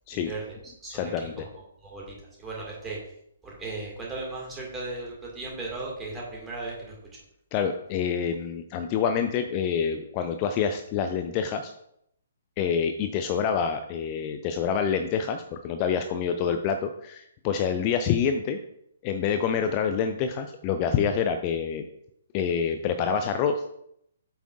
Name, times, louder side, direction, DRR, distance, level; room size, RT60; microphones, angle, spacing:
voice 1, 0.1-0.4 0.8-1.5 1.8-3.0 3.4-6.9, right 3 dB, 10° right, -3 dB, 2.1 m, -36 dB
voice 2, 0.9-1.4 7.5-11.7 12.6-18.6 19.0-21.8 22.3-23.6, left 7 dB, 30° left, 7 dB, 0.4 m, -27 dB
8.2 x 5.7 x 2.5 m, 0.74 s
figure-of-eight pair, 125°, 0 cm